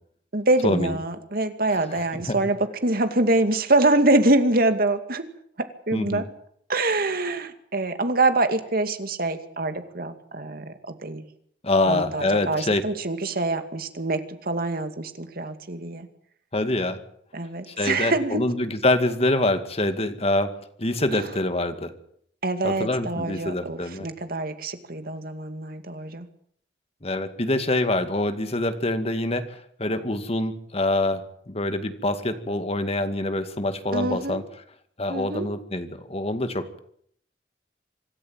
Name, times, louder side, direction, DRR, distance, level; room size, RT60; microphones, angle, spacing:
voice 1, 0.3-5.2 5.9-6.2 6.7-11.2 11.8-16.1 17.3-18.4 21.1-21.3 22.4-26.3 33.9-34.4 35.1-35.5, right 2 dB, 55° right, 8 dB, 2.4 m, -25 dB
voice 2, 5.9-6.2 11.6-12.8 16.5-17.0 17.7-20.5 20.8-21.9 22.6-24.1 27.0-34.4 35.0-36.8, left 2 dB, 35° left, 9 dB, 2.2 m, -25 dB
25.5 x 13.5 x 9.0 m, 0.67 s
head